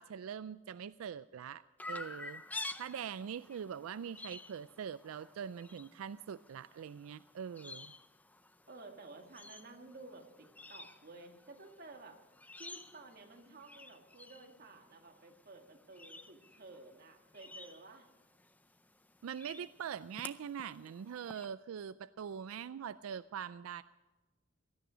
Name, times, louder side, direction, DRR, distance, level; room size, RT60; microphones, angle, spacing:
voice 1, 0.0-1.6 1.9-7.9 19.2-23.8, right 8 dB, 90° right, 15 dB, 0.4 m, -43 dB
Chirp tweet, 1.8-21.4, left 2 dB, 10° left, 0.5 m, -51 dB
voice 2, 8.6-12.2 12.6-18.1, right 3 dB, 45° right, 3 dB, 1.8 m, -53 dB
17.0 x 13.0 x 5.0 m, 1.2 s
head